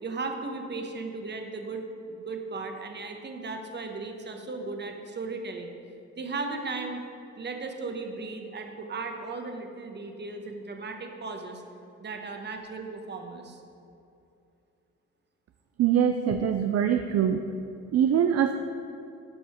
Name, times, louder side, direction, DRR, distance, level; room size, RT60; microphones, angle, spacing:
voice 1, 0.0-5.7 6.2-7.0 7.4-11.6 12.0-13.6, right 3 dB, 35° right, 4 dB, 1.1 m, -36 dB
voice 2, 15.8-17.4 17.9-18.5, right 9 dB, 55° right, 6 dB, 0.5 m, -23 dB
12.0 x 5.4 x 4.4 m, 2.7 s
cardioid pair, 90°, 30 cm